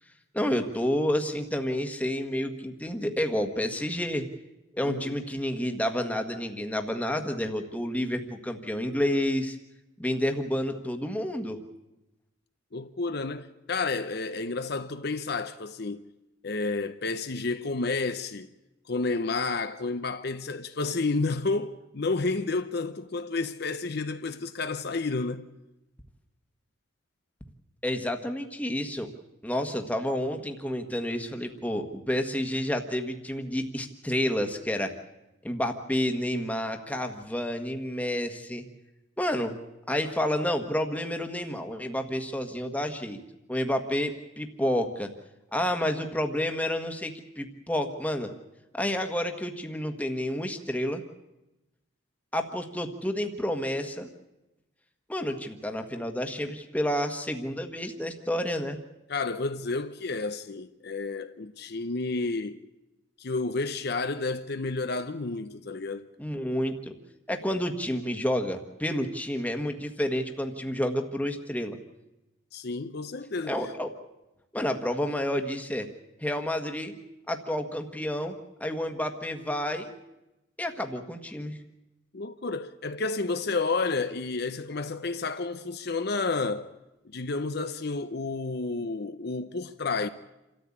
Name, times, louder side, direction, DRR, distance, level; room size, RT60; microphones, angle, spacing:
voice 1, 0.3-4.2 4.7-9.6 10.0-11.6 27.8-29.1 29.4-34.9 35.4-38.6 39.2-39.5 39.9-43.2 43.5-45.1 45.5-48.3 48.7-51.0 52.3-54.1 55.1-58.8 66.2-66.9 67.3-71.8 73.5-73.9 74.5-75.9 76.2-76.9 77.3-78.3 78.6-79.9 80.6-81.6, left 1 dB, 5° left, 1.5 m, -30 dB
voice 2, 4.8-5.2 12.7-16.0 16.4-18.5 18.9-25.5 59.1-62.6 63.2-66.1 72.5-73.7 82.1-86.7 87.0-90.1, left 3 dB, 50° left, 0.7 m, -31 dB
28.0 x 14.0 x 8.6 m
head